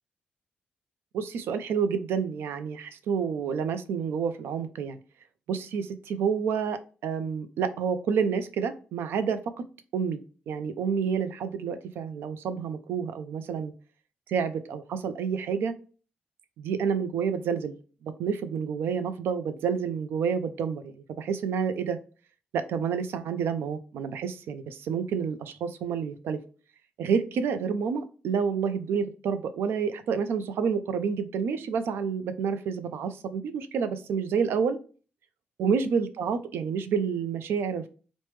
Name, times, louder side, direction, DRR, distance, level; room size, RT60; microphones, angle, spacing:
voice 1, 1.1-5.0 5.5-9.5 9.9-10.2 10.5-13.7 14.3-15.7 16.6-17.7 18.0-22.0 22.5-26.4 27.0-34.8 35.6-37.9, right 6 dB, 85° right, 11 dB, 0.4 m, -29 dB
3.1 x 2.1 x 3.1 m, 0.38 s
wide cardioid pair, 150°, 4 cm